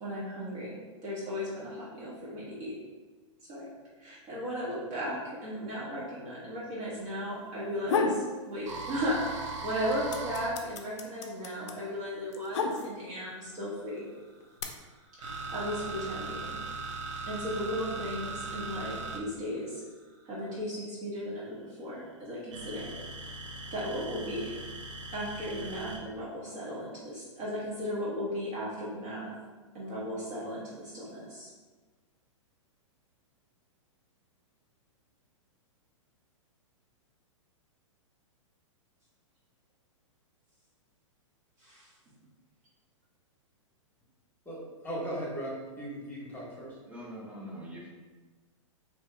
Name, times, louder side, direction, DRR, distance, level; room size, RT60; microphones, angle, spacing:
voice 1, 0.0-2.7 3.5-3.7 4.0-14.0 15.2-16.6 17.3-19.8 20.3-22.9 23.7-24.5 25.1-29.3 29.7-31.5 41.6-41.9, equal, 35° right, -8 dB, 1.0 m, -36 dB
sound 1, 7.6-8.3 8.7-9.4 9.6-13.2 14.0-14.6, left 4 dB, 60° left, 0.5 m, -31 dB
sound 2, 8.6-12.1 13.2-20.6 22.5-26.0, right 3 dB, 70° right, 0.7 m, -39 dB
voice 2, 44.4-46.8, right 1 dB, 10° left, -4 dB, 1.1 m, -38 dB
voice 3, 46.9-47.9, equal, 10° right, -4 dB, 0.8 m, -43 dB
2.9 x 2.7 x 3.3 m, 1.4 s
hypercardioid pair, 115°, 16 cm